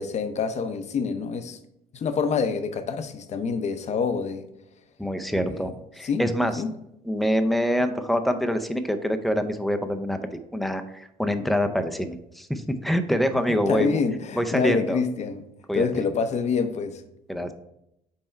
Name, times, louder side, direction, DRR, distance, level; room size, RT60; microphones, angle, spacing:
voice 1, 0.0-1.6 1.9-4.5 5.5-5.6 6.0-6.7 13.7-15.4 15.7-17.0, left 5 dB, 40° left, 9 dB, 0.7 m, -27 dB
voice 2, 5.0-6.6 7.0-14.0 14.4-15.0 15.7-15.9 17.3-17.5, equal, ahead, 8 dB, 0.5 m, -25 dB
5.6 x 4.3 x 4.4 m, 0.83 s
cardioid pair, 110°, 17 cm